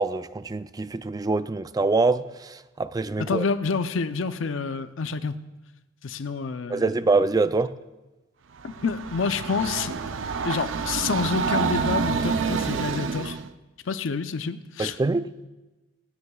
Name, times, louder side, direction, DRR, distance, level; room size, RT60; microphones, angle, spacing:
voice 1, 0.0-3.5 6.7-7.8 14.8-15.3, right 3 dB, 20° right, 0.3 m, -24 dB
voice 2, 3.2-5.3 6.0-6.9 8.6-9.9 10.4-13.4 13.9-14.9, left 5 dB, 75° left, 0.6 m, -28 dB
Train, 8.6-13.5, right 5 dB, 75° right, 0.5 m, -28 dB
26.5 x 9.7 x 2.3 m
head